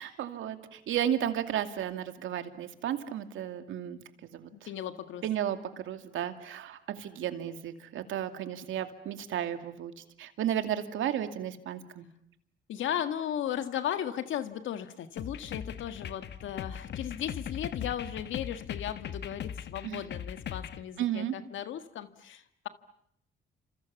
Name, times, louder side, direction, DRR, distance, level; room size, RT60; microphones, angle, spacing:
voice 1, 0.0-4.0 4.3-4.5 5.2-12.1 19.8-20.0 21.0-21.3, right 10 dB, 80° right, 8 dB, 2.5 m, -33 dB
voice 2, 4.5-5.2 12.7-22.7, left 10 dB, 75° left, 9 dB, 1.8 m, -36 dB
sound 1, 15.2-20.8, left 8 dB, 60° left, 1.3 m, -39 dB
30.0 x 27.0 x 7.3 m, 0.73 s
cardioid pair, 90°, 20 cm